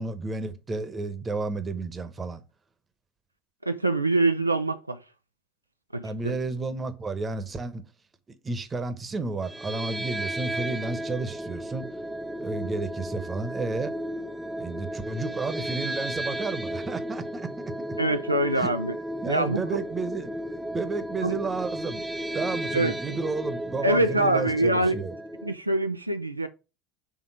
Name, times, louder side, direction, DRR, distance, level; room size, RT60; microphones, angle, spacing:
voice 1, 0.0-2.4 6.0-7.8 8.4-11.9 12.4-13.9 14.6-17.5 18.6-18.7 19.2-20.3 20.7-22.0 22.3-25.1, right 3 dB, 20° right, 1.0 m, -31 dB
voice 2, 3.6-5.0 5.9-6.3 18.0-18.9 19.3-19.8 21.2-21.4 22.7-23.0 23.8-24.9 25.4-26.5, right 2 dB, 90° right, 0.4 m, -24 dB
sound 1, 9.4-25.6, right 1 dB, 5° right, 0.5 m, -34 dB
6.2 x 3.6 x 4.9 m
figure-of-eight pair, 75°, 0 cm